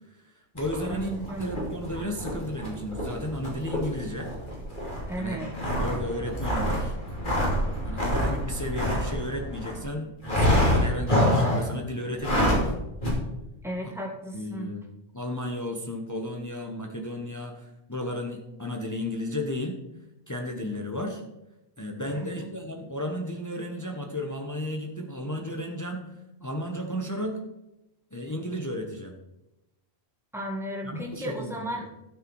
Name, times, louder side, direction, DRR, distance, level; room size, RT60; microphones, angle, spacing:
voice 1, 0.2-1.1 1.4-4.3 5.2-5.4 5.7-7.0 7.8-12.8 13.8-13.9 14.3-14.8 15.1-19.8 20.3-21.2 21.8-26.1 26.4-27.4 28.1-29.2 30.8-31.5, left 1 dB, 15° left, 2 dB, 1.0 m, -33 dB
sound 1, 0.6-9.8 10.2-11.7 12.1-12.7 13.0-13.1, equal, 50° left, 3.1 m, -27 dB
voice 2, 0.8-1.5 5.1-5.5 13.6-14.7 22.1-22.5 30.3-32.0, right 1 dB, ahead, -1 dB, 1.9 m, -34 dB
12.0 x 6.8 x 4.7 m, 0.93 s
omnidirectional pair, 1.1 m